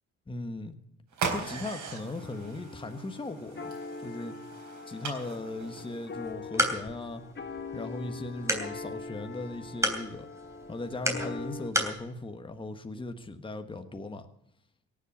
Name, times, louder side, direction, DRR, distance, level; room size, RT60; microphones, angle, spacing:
voice 1, 0.3-0.8 1.3-3.7 4.0-4.3 4.8-7.2 7.7-10.3 10.7-14.3, left 2 dB, 15° left, 7 dB, 1.3 m, -38 dB
sound 1, 1.1-6.3, right 5 dB, 75° right, 4.0 m, -39 dB
sound 2, 2.2-11.7, left 3 dB, 40° left, 1.5 m, -42 dB
sound 3, 6.2-12.0, right 1 dB, 10° right, 3.2 m, -34 dB
17.5 x 7.8 x 8.5 m, 0.73 s
cardioid pair, 90°, 30 cm